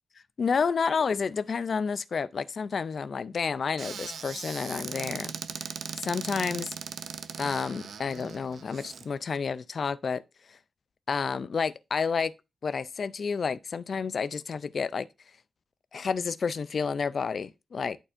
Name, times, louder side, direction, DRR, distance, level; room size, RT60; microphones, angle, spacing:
voice 1, 0.4-5.3 6.0-6.7 7.4-10.2 11.1-12.3 12.6-15.1 15.9-18.0, left 5 dB, 50° left, 0.3 m, -30 dB
Squeak / Cupboard open or close, 3.8-9.1, right 6 dB, 75° right, 0.5 m, -39 dB
11.0 x 4.3 x 2.5 m
wide cardioid pair, 135°, 0 cm